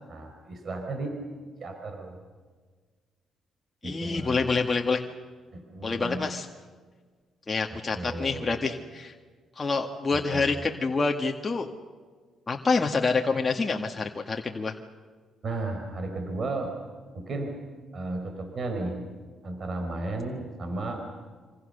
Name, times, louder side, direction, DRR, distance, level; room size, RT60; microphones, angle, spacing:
voice 1, 0.1-1.2 1.6-2.1 3.8-4.5 5.5-6.3 7.7-8.6 10.1-10.6 15.4-16.8 17.1-17.5 17.9-19.0 19.4-21.0, right 2 dB, 45° right, 4 dB, 4.6 m, -34 dB
voice 2, 3.8-5.0 5.8-6.5 7.5-9.1 9.6-11.7 12.5-14.7, left 4 dB, 30° left, 2 dB, 1.8 m, -27 dB
26.5 x 26.0 x 6.8 m, 1.5 s
cardioid pair, 90°, 0 cm